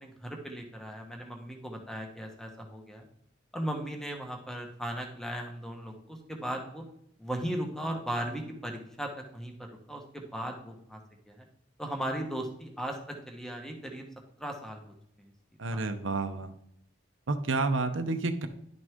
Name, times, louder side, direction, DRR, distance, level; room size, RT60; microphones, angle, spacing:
voice 1, 0.0-3.0 3.5-6.8 7.2-11.0 11.3-11.4 11.8-14.0 14.4-15.3 15.7-15.8, right 1 dB, 5° left, 2 dB, 1.2 m, -37 dB
voice 2, 15.6-16.5 17.3-18.5, right 3 dB, 75° right, 7 dB, 0.8 m, -30 dB
10.5 x 6.2 x 3.7 m, 0.72 s
head